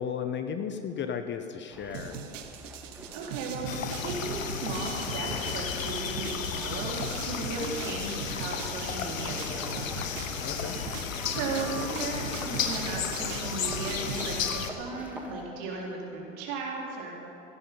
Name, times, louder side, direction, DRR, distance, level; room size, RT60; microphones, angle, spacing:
voice 1, 0.0-2.2 10.4-10.8, left 7 dB, 30° left, 8 dB, 0.8 m, -34 dB
sound 1, 1.7-15.5, right 1 dB, 5° right, 1.6 m, -46 dB
sound 2, 1.9-14.5, right 7 dB, 70° right, 1.2 m, -41 dB
voice 2, 3.1-10.0 11.2-17.2, right 3 dB, 50° right, -2 dB, 3.8 m, -36 dB
sound 3, 3.6-14.7, left 7 dB, 80° left, 1.2 m, -33 dB
16.0 x 11.0 x 5.4 m, 2.9 s
hypercardioid pair, 90°, 39 cm